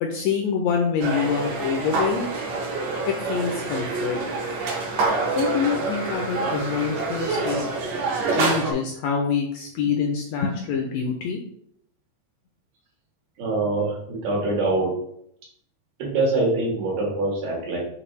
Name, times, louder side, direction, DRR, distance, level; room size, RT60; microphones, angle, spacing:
voice 1, 0.0-2.3 3.1-4.3 5.3-7.6 8.3-11.4, left 6 dB, 80° left, 1 dB, 1.6 m, -26 dB
sound 1, 1.0-8.7, right 3 dB, 70° right, 1.8 m, -26 dB
voice 2, 13.4-14.9 16.0-17.9, right 2 dB, 85° right, -4 dB, 3.1 m, -24 dB
6.6 x 2.6 x 3.1 m, 0.71 s
omnidirectional pair, 3.5 m